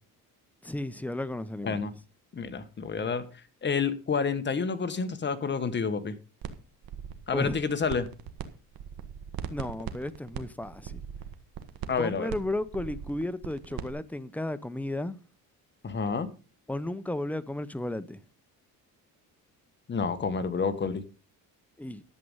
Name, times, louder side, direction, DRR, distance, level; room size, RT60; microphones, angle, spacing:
voice 1, 0.6-1.8 7.3-7.6 9.5-11.0 11.9-15.2 16.7-18.2 21.8-22.0, left 1 dB, 5° left, 0.7 m, -34 dB
voice 2, 2.3-3.2 3.6-6.1 7.3-8.1 11.9-12.3 15.8-16.3 19.9-21.0, left 5 dB, 30° left, 1.3 m, -29 dB
sound 1, 6.4-6.5 6.8-8.4 8.7-13.9, right 9 dB, 65° right, 1.5 m, -39 dB
11.0 x 7.7 x 5.4 m
cardioid pair, 125°, 37 cm